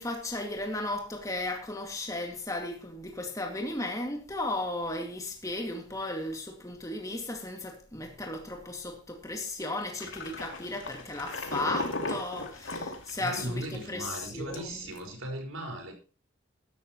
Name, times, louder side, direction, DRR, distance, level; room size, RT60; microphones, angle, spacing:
voice 1, 0.0-14.9, left 2 dB, 15° left, 2.3 m, -35 dB
sound 1, 10.0-13.8 14.1-14.2 14.5-15.0, left 2 dB, 70° left, 2.9 m, -36 dB
voice 2, 13.2-15.9, right 1 dB, 85° right, 5.3 m, -37 dB
14.5 x 12.5 x 3.1 m
head